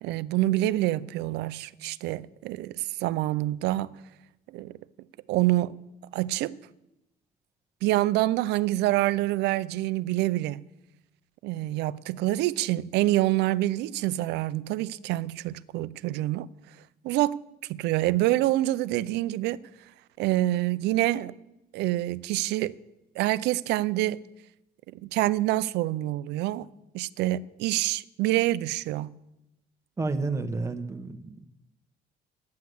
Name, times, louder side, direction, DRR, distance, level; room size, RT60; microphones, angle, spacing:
voice 1, 0.0-3.9 4.5-4.7 5.3-5.8 6.1-6.6 7.8-10.7 11.4-16.5 17.0-17.4 17.7-19.6 20.2-21.3 21.7-22.8 23.2-24.2 24.9-26.7 26.9-29.1, right 16 dB, 85° right, 0.5 m, -26 dB
voice 2, 30.0-31.5, right 3 dB, 15° right, 1.2 m, -30 dB
12.0 x 9.6 x 7.8 m
cardioid pair, 110°, 17 cm